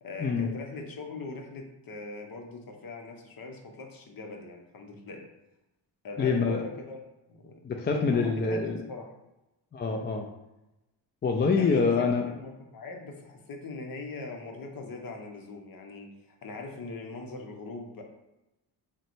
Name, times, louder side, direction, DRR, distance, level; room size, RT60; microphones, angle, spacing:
voice 1, 0.0-5.2 6.0-7.0 7.3-7.5 8.1-9.1 11.5-18.0, left 3 dB, 50° left, 3 dB, 0.9 m, -41 dB
voice 2, 6.2-6.6 7.6-8.8 9.7-10.3 11.2-12.2, left 4 dB, 25° left, 3 dB, 0.4 m, -25 dB
3.7 x 2.2 x 4.4 m, 0.94 s
cardioid pair, 70°, 45 cm